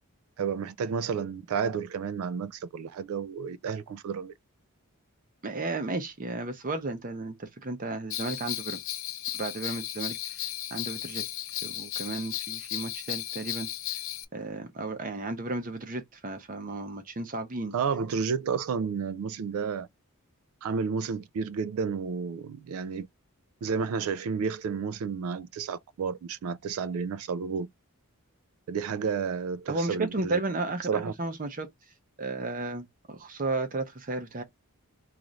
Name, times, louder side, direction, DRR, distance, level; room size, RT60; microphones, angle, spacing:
voice 1, 0.4-4.3 17.7-19.9 20.6-23.1 23.6-27.7 28.7-30.4 30.9-31.1, right 6 dB, 70° right, 0.3 m, -31 dB
voice 2, 5.4-8.8 9.3-11.2 11.6-13.7 14.3-17.7 29.7-31.7 32.2-34.4, right 2 dB, 40° right, 0.6 m, -33 dB
Bell, 8.1-14.2, left 13 dB, 60° left, 0.4 m, -35 dB
3.1 x 2.4 x 3.9 m
head